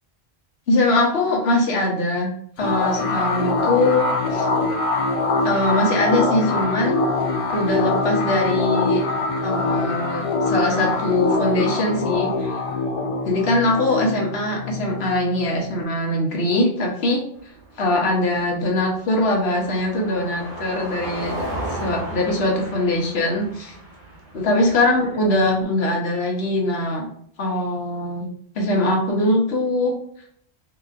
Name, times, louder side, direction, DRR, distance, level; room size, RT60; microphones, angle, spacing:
voice 1, 0.7-2.3 2.6-4.5 5.4-7.0 7.5-9.0 9.4-12.5 13.2-17.2 17.8-21.4 21.8-23.7 24.3-27.0 27.4-28.3 28.5-30.0, left 1 dB, 75° left, -1 dB, 1.2 m, -22 dB
sound 1, 2.6-15.8, left 3 dB, 50° left, 0.4 m, -23 dB
Car passing by, 17.4-25.6, right 1 dB, 50° right, 0.9 m, -35 dB
3.8 x 2.9 x 2.4 m, 0.67 s
omnidirectional pair, 1.1 m